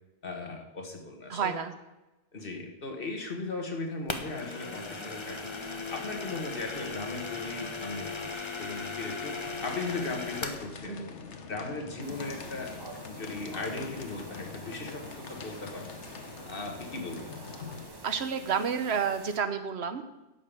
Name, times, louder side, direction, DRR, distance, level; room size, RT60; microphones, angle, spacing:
voice 1, 0.2-1.6 2.3-5.5 5.9-11.0 11.5-12.7 13.1-15.9 16.4-17.4, left 3 dB, 50° left, 3 dB, 1.7 m, -38 dB
voice 2, 1.3-1.7 10.9-11.1 18.0-20.0, right 6 dB, 65° right, 10 dB, 1.1 m, -30 dB
sound 1, 4.1-10.7, left 3 dB, 25° left, 0.9 m, -37 dB
sound 2, 9.4-17.9, left 5 dB, 70° left, 1.3 m, -44 dB
sound 3, 12.0-19.4, right 2 dB, 20° right, 1.0 m, -47 dB
11.5 x 5.7 x 8.4 m, 1.0 s
omnidirectional pair, 1.2 m